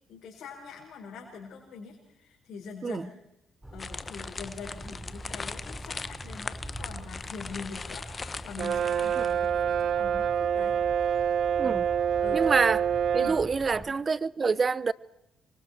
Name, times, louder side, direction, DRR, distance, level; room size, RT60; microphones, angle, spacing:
voice 1, 0.1-3.2 3.7-11.4 11.6-11.8 12.2-12.5 13.1-13.9, left 5 dB, 70° left, 4.9 m, -44 dB
sound 1, 3.6-13.9, right 1 dB, 10° right, 4.0 m, -44 dB
sound 2, 3.8-9.5, left 4 dB, 40° left, 1.1 m, -40 dB
Brass instrument, 8.6-13.5, right 8 dB, 65° right, 0.8 m, -26 dB
voice 2, 12.3-12.8 13.1-14.9, right 4 dB, 40° right, 0.8 m, -26 dB
27.5 x 24.0 x 4.5 m
supercardioid pair, 60°, 0 cm